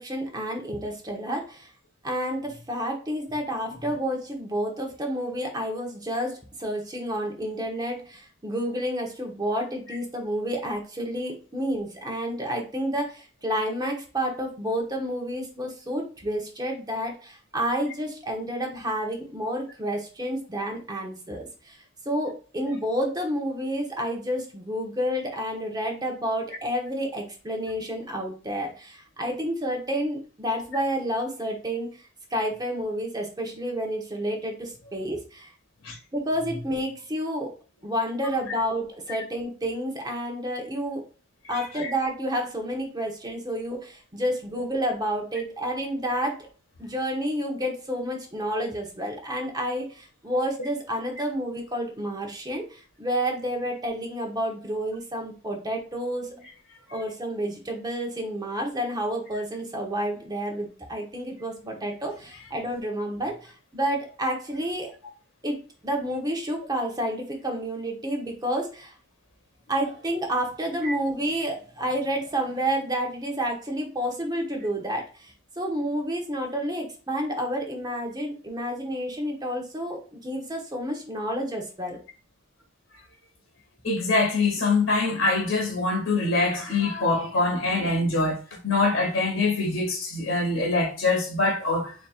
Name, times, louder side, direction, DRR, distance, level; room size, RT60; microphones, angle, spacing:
voice 1, 0.0-1.7 2.0-21.8 22.0-35.5 36.1-37.5 37.8-41.0 41.5-46.4 46.8-56.3 56.9-64.9 65.4-65.6 65.8-68.9 69.7-82.0, equal, 20° right, 1.1 m, -30 dB
voice 2, 41.4-41.9 56.9-57.0 70.8-70.9 83.8-92.0, left 3 dB, 80° left, 2.2 m, -24 dB
4.3 x 4.2 x 2.4 m
head